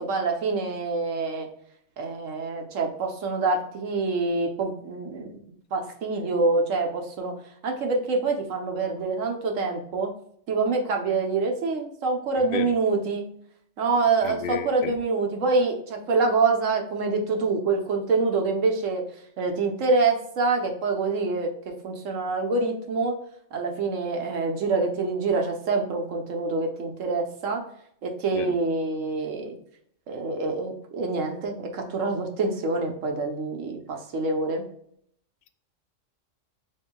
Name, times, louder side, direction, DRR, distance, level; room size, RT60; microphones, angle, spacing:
voice 1, 0.0-1.5 2.0-5.5 5.7-7.3 7.6-10.1 10.5-13.3 13.8-19.0 19.4-23.2 23.5-27.6 28.0-29.6 30.1-34.7, right 3 dB, 80° right, 3 dB, 1.3 m, -26 dB
voice 2, 12.4-12.7 14.2-14.9 28.3-28.6, left 8 dB, 65° left, 8 dB, 0.6 m, -33 dB
7.4 x 2.7 x 2.3 m, 0.69 s
omnidirectional pair, 1.3 m